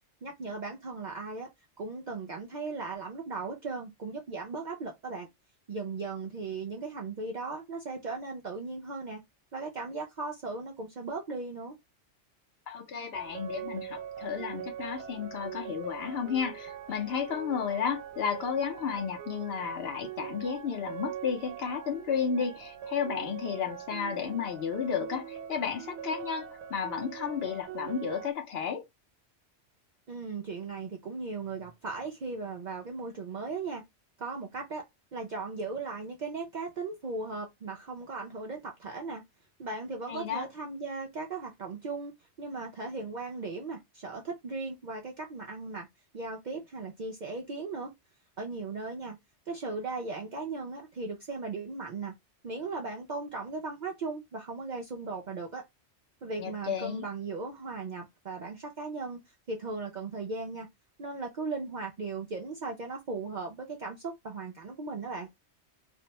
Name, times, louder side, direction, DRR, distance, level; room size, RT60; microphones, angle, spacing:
voice 1, 0.2-1.5 1.8-5.3 5.7-9.2 9.5-11.8 30.1-33.8 34.2-34.8 35.1-39.2 39.6-42.1 42.4-45.9 46.1-47.9 48.4-49.2 49.5-52.1 52.4-55.6 56.2-59.2 59.5-60.7 61.0-65.3, right 3 dB, 60° right, 0.5 m, -37 dB
voice 2, 12.7-28.8 40.1-40.4 56.4-57.0, left 7 dB, 65° left, 0.8 m, -33 dB
sound 1, 13.1-28.3, right 9 dB, 75° right, 0.8 m, -42 dB
2.6 x 2.1 x 2.7 m
omnidirectional pair, 1.2 m